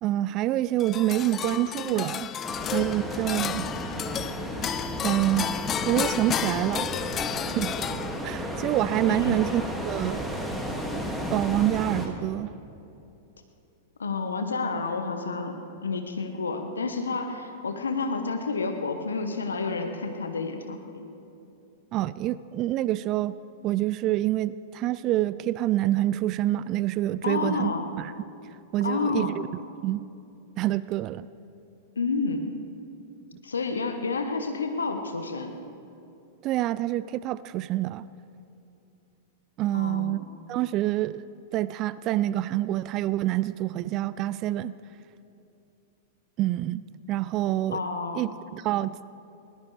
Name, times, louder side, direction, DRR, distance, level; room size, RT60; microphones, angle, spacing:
voice 1, 0.0-2.3 2.7-3.7 5.0-5.6 5.8-6.9 7.5-7.7 8.2-10.2 11.3-12.5 21.9-23.3 23.6-28.1 28.7-29.3 29.8-30.0 30.6-31.3 36.4-38.1 39.6-40.2 40.5-41.2 41.5-44.7 46.4-46.8 47.1-47.8 48.2-49.0, right 14 dB, 40° right, 17 dB, 0.4 m, -27 dB
sound 1, 0.8-8.5, left 9 dB, 30° left, 0.5 m, -32 dB
sound 2, 2.4-12.1, equal, ahead, 2.3 m, -33 dB
voice 2, 14.0-21.0 27.2-27.9 28.8-29.3 32.0-32.5 33.4-35.6 39.7-40.2 47.7-48.2, left 4 dB, 85° left, 6 dB, 1.2 m, -30 dB
21.0 x 19.5 x 3.4 m, 2.7 s
hypercardioid pair, 100°, 0 cm